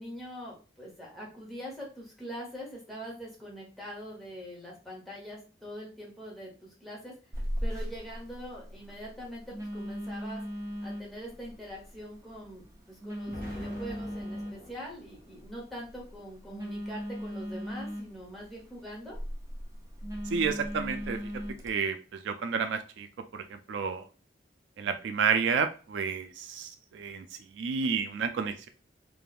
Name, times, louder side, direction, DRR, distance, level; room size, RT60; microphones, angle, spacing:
voice 1, 0.0-6.5 6.8-7.1 7.6-10.4 10.8-19.2, equal, ahead, -5 dB, 0.9 m, -43 dB
Telephone, 7.3-21.7, equal, 20° right, 0.5 m, -39 dB
Explosion, 13.3-15.4, left 1 dB, 50° right, 0.9 m, -45 dB
voice 2, 20.3-21.2 21.6-23.1 23.3-24.0 24.8-27.2 27.6-28.7, right 6 dB, 85° right, 7 dB, 0.3 m, -30 dB
3.4 x 2.2 x 2.4 m, 0.35 s
head